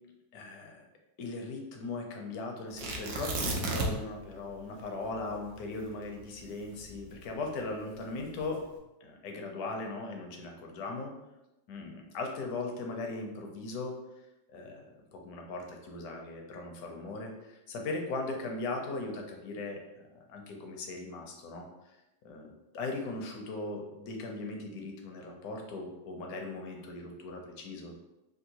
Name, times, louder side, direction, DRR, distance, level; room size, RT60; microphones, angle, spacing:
voice 1, 0.3-0.8 1.2-8.6 9.0-11.1 11.7-13.9 14.5-14.9 15.1-19.8 20.3-21.7 22.2-27.9, left 3 dB, 75° left, 2 dB, 1.1 m, -38 dB
Tearing, 2.8-4.2 4.5-4.6 5.1-7.5 8.2-8.6, right 2 dB, 75° right, 1.0 m, -34 dB
3.6 x 2.4 x 2.8 m, 0.98 s
omnidirectional pair, 1.8 m